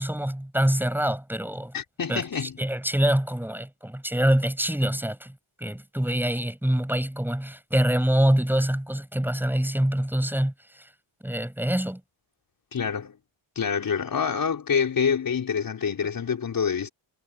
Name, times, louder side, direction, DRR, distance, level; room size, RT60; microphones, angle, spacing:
voice 1, 0.0-1.7 2.1-5.3 5.6-10.5 11.2-12.0, right 1 dB, 5° right, 6.7 m, -25 dB
voice 2, 1.7-2.6 12.7-13.2 13.6-16.9, left 6 dB, 45° left, 4.3 m, -26 dB
cardioid pair, 95°, 49 cm